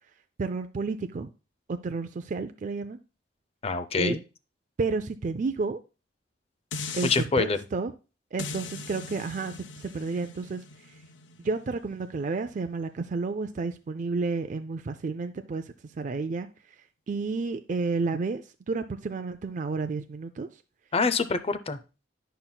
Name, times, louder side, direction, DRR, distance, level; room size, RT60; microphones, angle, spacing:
voice 1, 0.4-1.3 1.7-3.0 4.0-4.2 4.8-5.8 6.9-7.1 7.4-7.9 8.3-10.9 11.4-16.5 17.1-20.5, right 4 dB, 45° right, 0.4 m, -31 dB
voice 2, 3.6-4.2 7.0-7.6 20.9-21.8, left 4 dB, 35° left, 0.5 m, -25 dB
sound 1, 6.7-7.3 8.4-13.5 14.0-14.1, left 4 dB, 80° left, 0.6 m, -40 dB
10.5 x 5.7 x 2.2 m
head